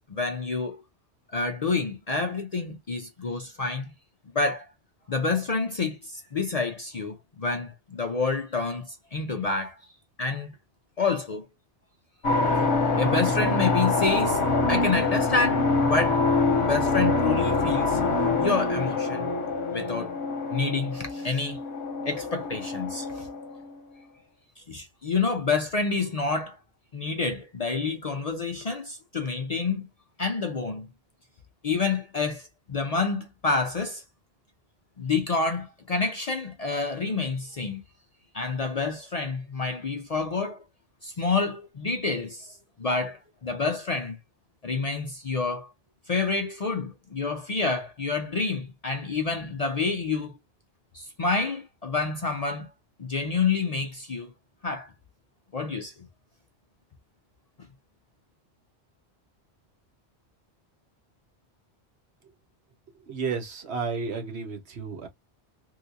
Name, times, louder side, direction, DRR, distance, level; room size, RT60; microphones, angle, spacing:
voice 1, 0.1-0.8 1.3-3.9 4.3-4.7 5.1-9.8 10.2-10.5 11.0-11.5 12.5-12.6 13.0-14.4 14.7-16.3 16.6-18.0 18.4-19.3 19.7-20.1 20.5-21.6 22.1-23.3 24.7-26.6 26.9-29.9 30.2-30.9 31.6-34.0 35.0-37.8 38.3-40.6 41.0-44.2 44.6-45.7 46.1-50.3 50.9-52.7 53.0-54.3 54.6-54.9 55.5-55.9, left 4 dB, 50° left, 0.5 m, -28 dB
sound 1, 12.2-23.7, left 3 dB, 85° left, 1.1 m, -25 dB
voice 2, 63.1-65.1, right 5 dB, 70° right, 1.2 m, -32 dB
3.2 x 2.8 x 2.6 m
omnidirectional pair, 1.1 m